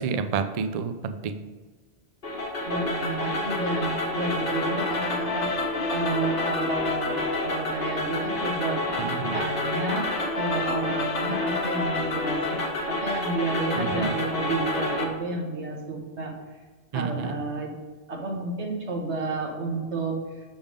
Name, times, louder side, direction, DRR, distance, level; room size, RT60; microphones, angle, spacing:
voice 1, 0.0-1.4 9.0-9.4 13.8-14.1 16.9-17.3, right 6 dB, 60° right, 9 dB, 0.4 m, -29 dB
sound 1, 2.2-15.1, left 2 dB, 55° left, 1.2 m, -28 dB
voice 2, 2.7-5.5 5.9-8.8 9.3-16.3 16.9-17.7 18.1-20.4, right 3 dB, 85° right, -1 dB, 1.6 m, -31 dB
7.0 x 3.6 x 5.1 m, 1.3 s
omnidirectional pair, 1.1 m